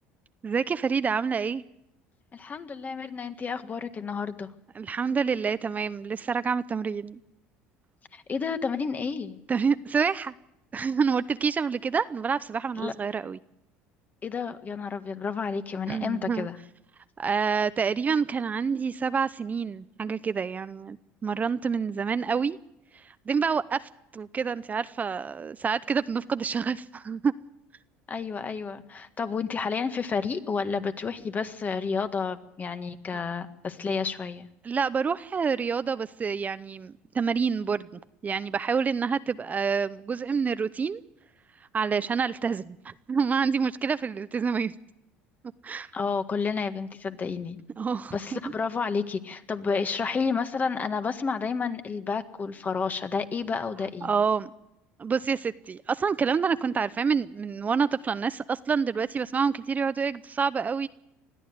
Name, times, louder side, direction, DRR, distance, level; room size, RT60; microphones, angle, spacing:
voice 1, 0.4-1.6 4.8-7.2 9.5-10.3 10.7-13.4 15.9-16.5 17.2-21.0 21.2-22.6 22.9-27.3 34.6-41.0 41.7-44.7 45.6-45.9 47.8-48.4 54.0-54.5 55.0-60.9, right 5 dB, 30° right, 14 dB, 0.7 m, -27 dB
voice 2, 2.3-4.5 8.1-9.4 12.7-12.9 14.2-16.6 28.1-34.5 45.9-47.6 48.1-54.1, left 5 dB, 30° left, 9 dB, 1.7 m, -30 dB
21.0 x 13.5 x 9.5 m, 0.83 s
supercardioid pair, 85°, 5 cm